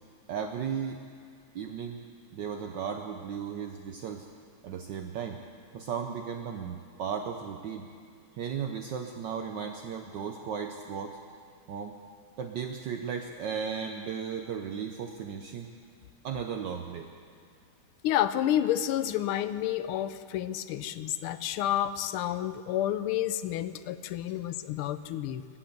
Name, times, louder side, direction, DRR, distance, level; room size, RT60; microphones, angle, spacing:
voice 1, 0.3-1.0 1.5-2.0 2.3-4.3 4.6-5.4 5.7-7.8 8.3-11.2 11.7-11.9 12.4-15.7 16.2-17.1, right 7 dB, 65° right, 4 dB, 1.2 m, -35 dB
voice 2, 18.0-25.6, left 11 dB, 85° left, 13 dB, 1.5 m, -30 dB
22.5 x 7.9 x 7.8 m, 2.3 s
omnidirectional pair, 2.4 m